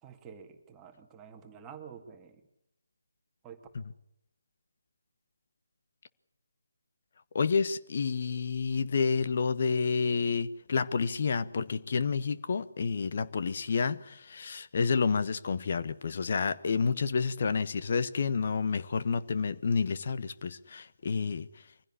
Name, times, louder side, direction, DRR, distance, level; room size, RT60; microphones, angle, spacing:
voice 1, 0.0-2.4 3.4-3.6, right 7 dB, 15° right, 2.1 m, -49 dB
voice 2, 7.3-21.5, left 5 dB, 45° left, 1.3 m, -29 dB
24.0 x 16.5 x 9.9 m
figure-of-eight pair, 155°, 0 cm